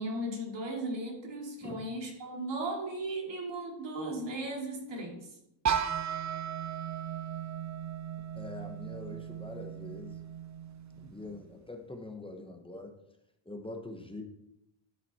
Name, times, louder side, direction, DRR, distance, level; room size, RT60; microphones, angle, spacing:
voice 1, 0.0-5.3, right 1 dB, 60° right, 0 dB, 2.6 m, -36 dB
sound 1, 5.7-11.5, right 8 dB, 35° right, 0.6 m, -36 dB
voice 2, 8.3-10.2 11.0-12.9 13.5-14.2, left 2 dB, 10° left, 4 dB, 1.0 m, -43 dB
12.5 x 5.8 x 4.2 m, 0.82 s
cardioid pair, 145°, 49 cm